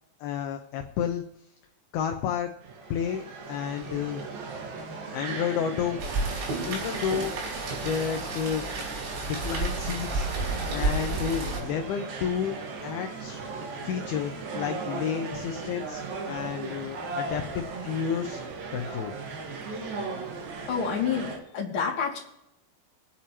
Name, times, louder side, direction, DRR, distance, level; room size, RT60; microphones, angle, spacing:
voice 1, 0.2-1.2 1.9-2.5 2.9-3.2 3.5-4.2 5.1-6.0 6.7-7.3 7.8-8.6 9.4-10.3 10.7-12.6 12.8-13.4 13.9-18.4 18.7-19.1, left 8 dB, 80° left, 4 dB, 2.3 m, -31 dB
sound 1, 2.6-21.4, right 4 dB, 60° right, 3.2 m, -37 dB
Rain, 6.0-11.6, right 2 dB, 80° right, 5.9 m, -31 dB
voice 2, 20.7-22.2, left 6 dB, 35° left, -2 dB, 2.4 m, -28 dB
24.5 x 8.5 x 3.0 m, 0.85 s
omnidirectional pair, 5.2 m